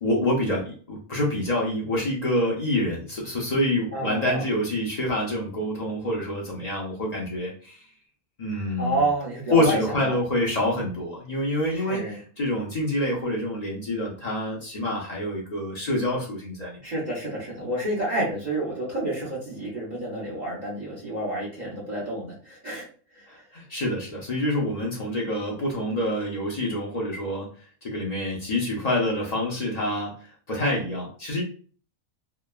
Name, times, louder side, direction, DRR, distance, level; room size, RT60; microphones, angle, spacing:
voice 1, 0.0-7.8 8.4-9.1 9.5-16.8 23.3-31.4, left 1 dB, 55° left, -3 dB, 0.4 m, -27 dB
voice 2, 3.9-4.5 8.8-10.1 11.7-12.2 16.8-22.9 23.1-23.3, right 1 dB, 40° right, -6 dB, 0.7 m, -29 dB
2.9 x 2.2 x 2.3 m, 0.42 s
omnidirectional pair, 1.6 m